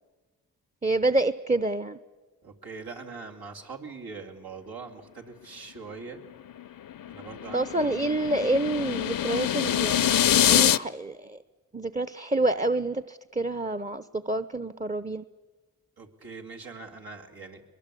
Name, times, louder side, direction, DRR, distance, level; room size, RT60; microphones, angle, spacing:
voice 1, 0.8-2.0 7.5-10.1 10.5-11.4 11.7-15.2, right 2 dB, 20° right, 13 dB, 0.9 m, -27 dB
voice 2, 2.4-6.2 7.1-8.0 16.0-17.6, right 4 dB, 80° right, 1 dB, 2.9 m, -42 dB
sound 1, 6.5-10.8, left 10 dB, 65° left, 0.7 m, -25 dB
22.5 x 22.0 x 8.5 m, 1.3 s
cardioid pair, 45°, 36 cm